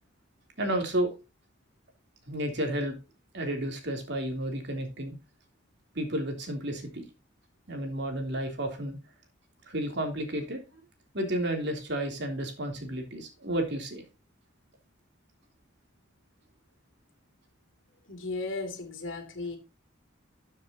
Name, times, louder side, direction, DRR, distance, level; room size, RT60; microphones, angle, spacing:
voice 1, 0.6-1.1 2.3-2.9 3.3-5.1 5.9-7.1 7.7-9.0 9.7-10.6 11.1-14.0, right 1 dB, 55° right, 3.3 m, -31 dB
voice 2, 18.1-19.6, left 3 dB, 65° left, 3.0 m, -35 dB
13.5 x 7.4 x 2.9 m
head